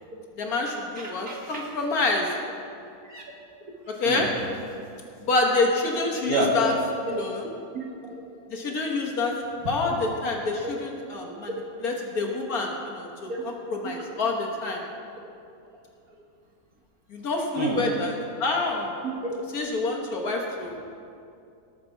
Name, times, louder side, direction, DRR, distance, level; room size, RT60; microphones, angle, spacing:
voice 1, 0.4-2.3 4.0-4.3 5.2-6.7 7.1-7.4 8.5-9.3 9.7-14.8 17.1-18.1 18.4-18.9 19.5-20.8, left 3 dB, 65° left, 0 dB, 1.9 m, -27 dB
voice 2, 1.0-1.6 3.1-3.2 4.0-4.3 6.3-7.1 7.7-8.1 13.3-13.4 14.0-14.1 17.6-17.8 19.0-19.3, right 2 dB, 65° right, -1 dB, 2.2 m, -29 dB
18.5 x 7.2 x 4.6 m, 2.5 s
omnidirectional pair, 1.7 m